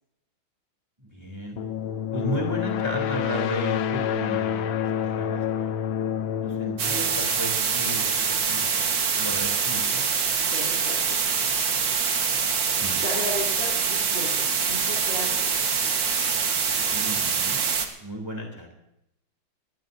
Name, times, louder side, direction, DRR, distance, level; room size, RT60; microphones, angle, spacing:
voice 1, 1.0-1.6 2.1-4.7 5.0-5.4 6.4-8.9 9.2-10.0 12.7-13.0 16.9-17.6 18.0-18.7, equal, 10° right, 1 dB, 3.0 m, -34 dB
sound 1, 1.6-8.2, left 9 dB, 80° left, 1.5 m, -28 dB
sound 2, 6.8-17.9, right 6 dB, 65° right, 2.1 m, -25 dB
voice 2, 10.5-11.2 13.0-15.5, left 1 dB, 65° left, -4 dB, 3.6 m, -35 dB
23.0 x 16.0 x 2.7 m, 0.83 s
omnidirectional pair, 2.2 m